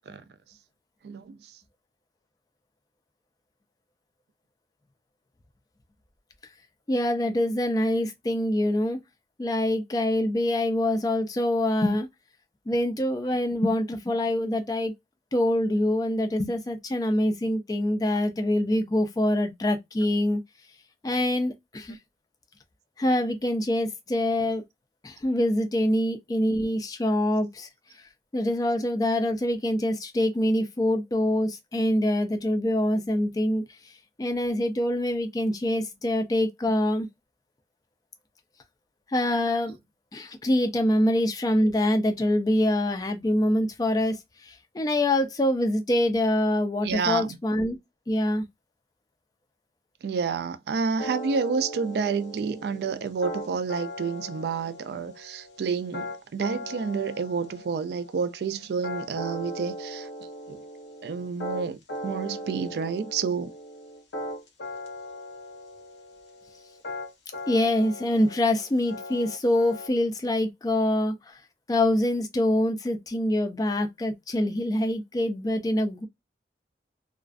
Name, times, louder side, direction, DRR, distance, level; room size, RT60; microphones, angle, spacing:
voice 1, 1.0-1.4 46.8-47.4 50.0-60.1 60.5-60.6 61.0-63.5, right 5 dB, 65° right, 0.3 m, -29 dB
voice 2, 6.9-9.0 9.4-12.1 12.7-14.9 15.3-20.4 21.0-22.0 23.0-24.6 25.0-27.7 28.3-33.6 34.2-37.1 39.1-39.8 40.1-44.2 44.4-47.8 48.1-48.4 67.5-71.4 71.7-76.1, left 1 dB, 20° left, 0.3 m, -25 dB
sound 1, 51.0-69.9, left 1 dB, 90° left, 0.8 m, -39 dB
2.4 x 2.1 x 2.4 m
head